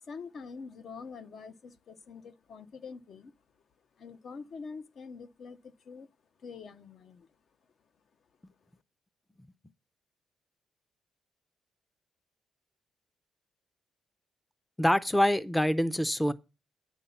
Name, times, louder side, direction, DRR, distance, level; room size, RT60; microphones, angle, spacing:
voice 1, 0.0-6.1 6.4-7.4 8.6-8.7, left 5 dB, 60° left, 0.8 m, -46 dB
voice 2, 14.8-16.3, equal, 10° left, 0.6 m, -25 dB
9.3 x 5.5 x 7.1 m
cardioid pair, 100°, 0 cm